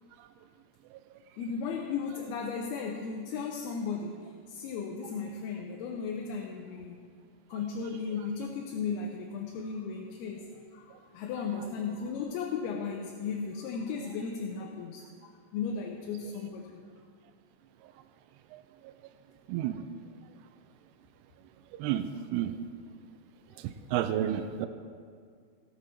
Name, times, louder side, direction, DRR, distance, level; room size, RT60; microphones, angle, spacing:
voice 1, 1.4-7.0 7.5-16.8, left 5 dB, 80° left, 1 dB, 2.7 m, -36 dB
voice 2, 18.5-18.9 19.5-19.8 21.7-22.0 22.3-22.5 23.6-24.7, right 11 dB, 90° right, 10 dB, 2.6 m, -31 dB
18.0 x 7.7 x 4.5 m, 2.1 s
omnidirectional pair, 4.6 m